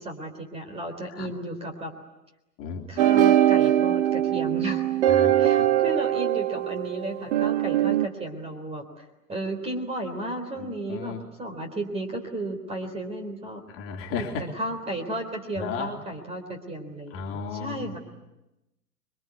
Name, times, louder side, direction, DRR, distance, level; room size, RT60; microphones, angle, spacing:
voice 1, 0.0-1.9 2.9-4.8 5.4-9.0 9.3-13.7 14.1-18.0, right 1 dB, 10° right, 6 dB, 3.7 m, -34 dB
voice 2, 2.6-3.0 5.1-5.7 10.6-11.2 13.7-14.5 15.6-15.9 17.1-18.0, left 5 dB, 25° left, 1 dB, 3.4 m, -34 dB
sound 1, 3.0-8.1, right 11 dB, 45° right, 2.1 m, -22 dB
26.5 x 23.5 x 9.5 m, 0.95 s
hypercardioid pair, 125°, 47 cm